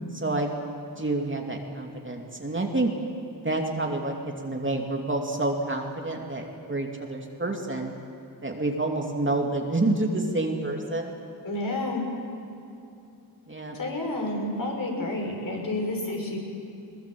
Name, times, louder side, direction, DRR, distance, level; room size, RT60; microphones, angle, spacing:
voice 1, 0.1-0.5 1.0-2.9 3.4-4.1 4.4-8.0 8.4-11.1 13.5-13.8, right 2 dB, 25° right, 1 dB, 2.7 m, -28 dB
voice 2, 11.4-12.0 13.7-16.4, left 2 dB, 50° left, 0 dB, 6.1 m, -30 dB
21.5 x 20.0 x 7.8 m, 2.6 s
cardioid pair, 60°, 43 cm